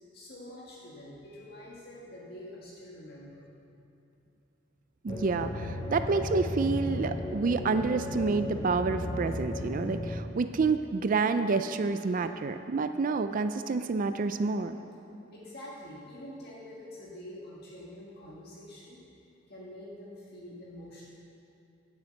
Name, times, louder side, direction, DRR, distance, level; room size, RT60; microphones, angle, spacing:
voice 1, 0.1-3.5 15.3-19.0 19.5-21.1, left 1 dB, 55° left, -5 dB, 1.7 m, -46 dB
voice 2, 5.0-14.8, right 4 dB, 45° right, 9 dB, 0.4 m, -28 dB
sound 1, 5.1-10.2, left 1 dB, 25° left, 0.7 m, -35 dB
9.7 x 9.6 x 7.9 m, 2.8 s
head